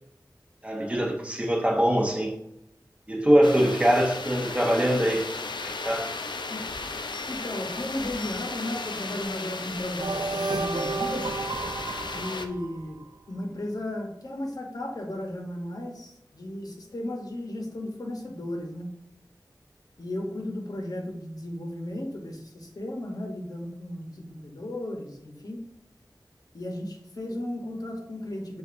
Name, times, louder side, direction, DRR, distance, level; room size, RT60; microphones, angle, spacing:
voice 1, 0.6-2.4 3.1-5.3 5.6-6.1, equal, 15° right, -1 dB, 0.9 m, -23 dB
light wind with chimes, 3.4-12.5, left 3 dB, 85° left, 0.4 m, -35 dB
voice 2, 7.3-11.3 12.1-13.0 13.3-18.9 20.0-25.6 26.5-28.6, left 1 dB, 55° left, 2 dB, 0.8 m, -35 dB
sound 1, 10.0-13.0, right 3 dB, 70° right, 0.4 m, -31 dB
7.3 x 2.5 x 2.5 m, 0.87 s
wide cardioid pair, 65°, 8 cm